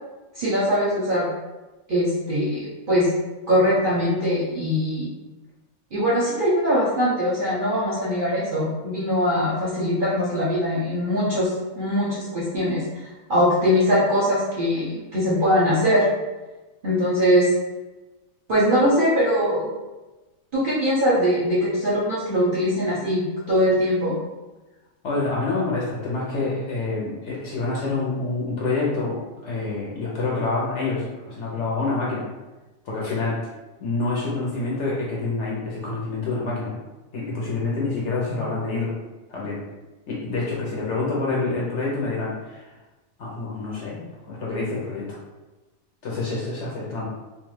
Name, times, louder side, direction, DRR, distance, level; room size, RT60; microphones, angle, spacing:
voice 1, 0.3-1.3 1.9-3.1 3.5-5.1 5.9-11.5 11.7-12.8 13.3-16.0 16.8-17.5 18.5-19.7 20.5-24.2, equal, 50° right, -8 dB, 0.7 m, -21 dB
voice 2, 25.0-32.3 32.8-33.4 33.8-36.8 37.1-38.9 39.3-39.6 40.1-42.7 43.2-45.2 46.0-47.1, left 3 dB, 60° left, -5 dB, 0.8 m, -27 dB
2.5 x 2.3 x 3.1 m, 1.1 s
omnidirectional pair, 1.5 m